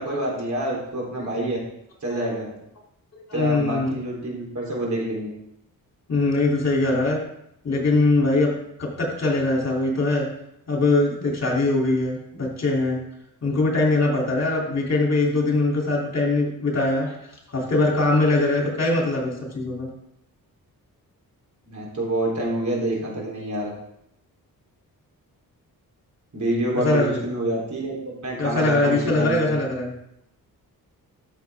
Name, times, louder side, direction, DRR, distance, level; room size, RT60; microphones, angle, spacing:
voice 1, 0.0-1.6 2.0-2.5 3.3-5.3 21.7-23.7 26.3-29.5, right 1 dB, 50° right, -3 dB, 3.6 m, -27 dB
voice 2, 3.1-4.0 6.1-7.2 7.6-8.5 8.8-10.3 10.7-13.0 13.4-17.2 17.5-19.9 26.7-27.2 28.4-29.9, left 2 dB, 45° left, -2 dB, 3.1 m, -22 dB
13.5 x 6.7 x 3.6 m, 0.78 s
wide cardioid pair, 110°, 36 cm